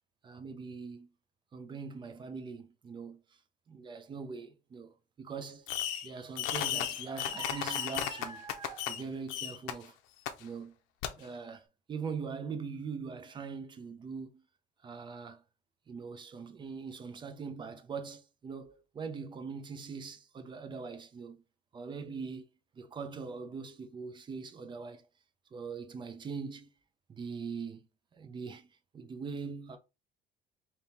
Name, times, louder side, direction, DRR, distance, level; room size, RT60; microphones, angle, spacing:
voice 1, 0.2-1.1 1.5-3.2 3.7-5.7 6.0-9.9 10.4-10.7 11.2-14.4 14.8-15.4 15.9-21.4 21.7-22.4 22.7-25.1 25.5-26.7 27.1-27.8 28.1-28.7 28.9-29.8, right 5 dB, 25° right, 0.5 m, -42 dB
Fireworks, 5.7-6.1 6.4-9.0 9.3-9.7 10.3-10.4 11.0-11.1, left 11 dB, 90° left, 0.6 m, -34 dB
3.5 x 2.8 x 4.1 m
cardioid pair, 150°, 20 cm